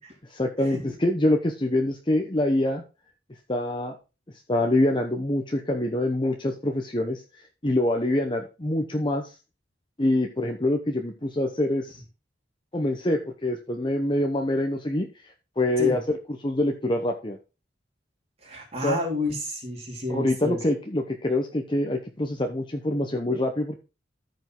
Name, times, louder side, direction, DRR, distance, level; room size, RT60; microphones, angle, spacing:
voice 1, 0.3-2.8 3.5-4.0 4.5-9.3 10.0-12.0 12.7-15.1 15.6-17.4 18.8-19.0 20.1-23.8, left 1 dB, 25° left, 4 dB, 0.9 m, -25 dB
voice 2, 18.4-20.6, left 1 dB, 35° right, -1 dB, 3.7 m, -30 dB
13.5 x 5.3 x 3.8 m, 0.30 s
head